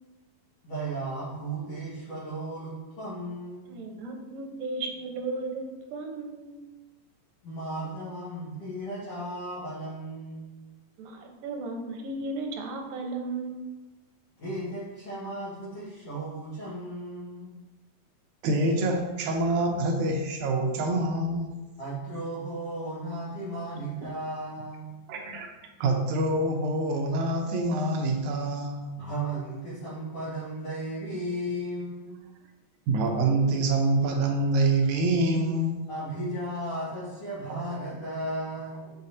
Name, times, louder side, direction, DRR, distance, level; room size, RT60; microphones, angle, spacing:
voice 1, 0.6-3.7 7.4-10.6 14.4-17.6 21.8-24.9 28.9-32.2 35.9-38.9, right 1 dB, 55° left, -12 dB, 2.6 m, -35 dB
voice 2, 3.7-5.6 5.9-6.6 11.0-13.6, right 3 dB, 90° right, 3 dB, 2.4 m, -35 dB
voice 3, 18.4-21.5 24.0-24.1 25.1-25.5 25.8-29.0 32.9-35.9 37.5-37.6, right 2 dB, 75° right, 2 dB, 2.0 m, -26 dB
8.4 x 4.2 x 2.8 m, 1.1 s
omnidirectional pair, 3.8 m